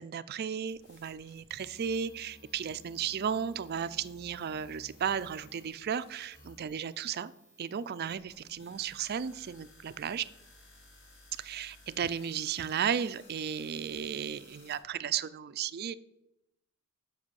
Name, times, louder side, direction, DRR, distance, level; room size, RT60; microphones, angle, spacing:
voice 1, 0.0-7.3 7.6-10.3 11.4-15.9, right 8 dB, 45° right, 16 dB, 0.4 m, -34 dB
sound 1, 0.7-14.8, left 1 dB, 60° left, 3.1 m, -57 dB
7.4 x 6.1 x 6.3 m, 0.87 s
head